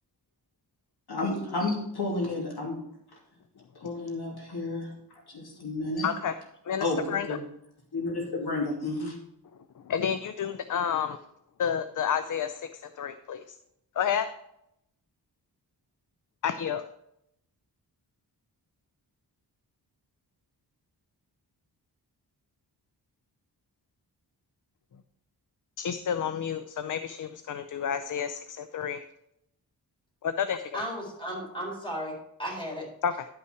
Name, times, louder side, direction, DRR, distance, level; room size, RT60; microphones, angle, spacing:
voice 1, 1.1-2.8 3.7-4.9 5.3-6.1 6.8-7.4 7.9-9.1, left 2 dB, 65° left, -2 dB, 2.8 m, -31 dB
voice 2, 6.0-6.3 6.7-7.3 9.9-11.2 11.6-13.4 14.0-14.3 16.4-16.8 25.8-29.0 30.2-30.8 33.0-33.3, left 8 dB, 50° left, 11 dB, 0.5 m, -30 dB
voice 3, 30.7-32.9, equal, 10° left, -2 dB, 4.2 m, -35 dB
11.0 x 5.7 x 4.5 m, 0.79 s
wide cardioid pair, 85°, 41 cm